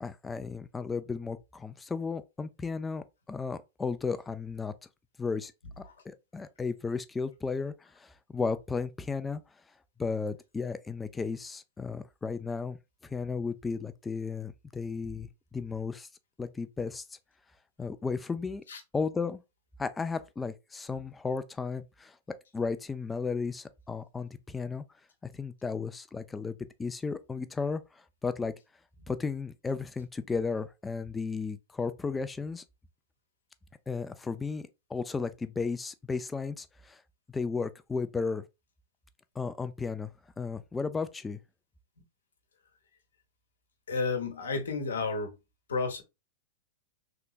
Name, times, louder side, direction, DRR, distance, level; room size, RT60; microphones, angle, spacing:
voice 1, 0.0-4.7 5.2-5.5 5.8-9.4 10.0-12.8 13.0-16.1 16.4-17.0 17.8-18.6 18.9-19.4 19.8-22.2 22.5-24.8 25.2-27.8 28.2-28.5 29.1-32.6 33.9-37.0 37.3-38.4 39.4-41.4, left 4 dB, 15° left, 0.4 m, -34 dB
voice 2, 43.9-45.3 45.7-46.0, left 4 dB, 80° left, 1.0 m, -32 dB
3.4 x 2.8 x 2.4 m
hypercardioid pair, 105°, 0 cm